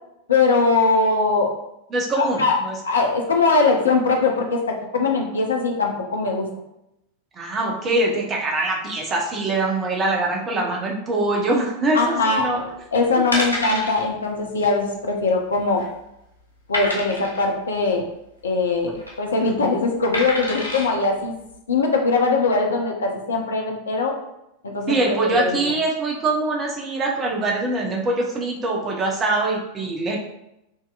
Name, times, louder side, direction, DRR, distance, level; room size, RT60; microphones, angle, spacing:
voice 1, 0.3-1.5 2.1-2.6 2.8-6.5 11.9-15.8 16.7-18.0 18.4-18.9 19.2-21.3 21.7-24.1 24.6-25.6, left 3 dB, 70° left, 1 dB, 0.8 m, -21 dB
voice 2, 1.9-2.7 7.4-12.6 13.3-13.4 24.9-30.2, right 2 dB, 25° right, -1 dB, 1.0 m, -23 dB
sound 1, 12.7-12.8 13.3-14.0 14.4-14.6 14.8-14.9 15.5-16.0 16.7-17.4 18.7-19.1 20.1-20.9 21.5-21.6, left 1 dB, 85° right, 1.2 m, -27 dB
6.3 x 2.8 x 2.5 m, 0.85 s
figure-of-eight pair, 90°, 0 cm